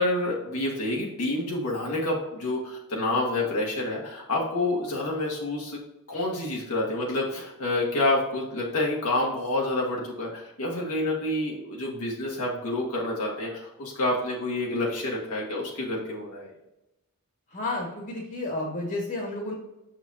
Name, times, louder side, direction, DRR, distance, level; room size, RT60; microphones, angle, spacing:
voice 1, 0.0-5.8 6.1-16.5, left 2 dB, 75° left, -3 dB, 1.7 m, -28 dB
voice 2, 17.5-19.5, left 2 dB, 45° left, -2 dB, 1.7 m, -31 dB
6.9 x 6.1 x 2.7 m, 0.92 s
head